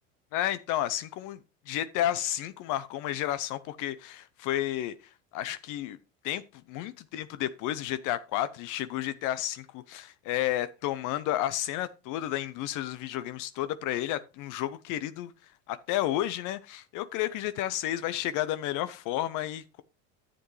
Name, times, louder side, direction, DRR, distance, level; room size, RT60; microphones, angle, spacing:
voice 1, 0.3-1.4 1.7-5.0 5.3-6.0 6.2-15.3 15.7-19.8, left 13 dB, 55° left, 0.6 m, -31 dB
11.0 x 7.5 x 3.1 m
supercardioid pair, 95°, 37 cm